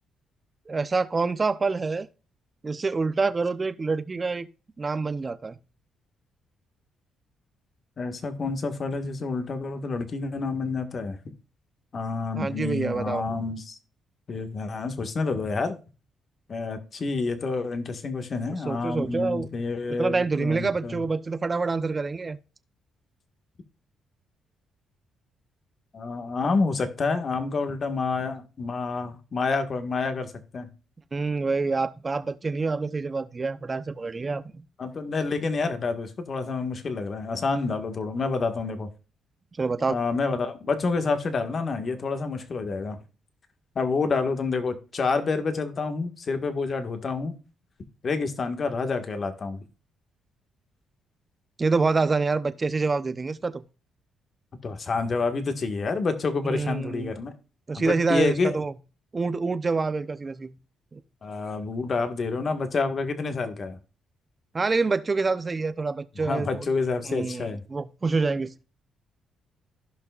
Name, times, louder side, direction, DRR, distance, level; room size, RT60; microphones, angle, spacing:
voice 1, 0.7-2.1 2.6-4.5 4.8-5.6 12.3-13.2 18.5-19.5 20.0-22.4 31.1-34.4 39.6-39.9 51.6-53.6 56.5-57.1 57.7-58.7 59.1-60.5 60.9-61.0 64.5-66.7 67.0-68.6, right 4 dB, 30° right, 0.8 m, -26 dB
voice 2, 8.0-11.2 11.9-13.8 14.3-15.8 16.5-21.0 25.9-30.7 34.8-38.9 39.9-43.0 43.8-47.4 48.0-49.6 54.6-57.3 57.7-58.6 61.2-63.8 66.2-67.6, left 4 dB, 45° left, 1.7 m, -28 dB
15.5 x 5.7 x 2.5 m
cardioid pair, 90°, 0 cm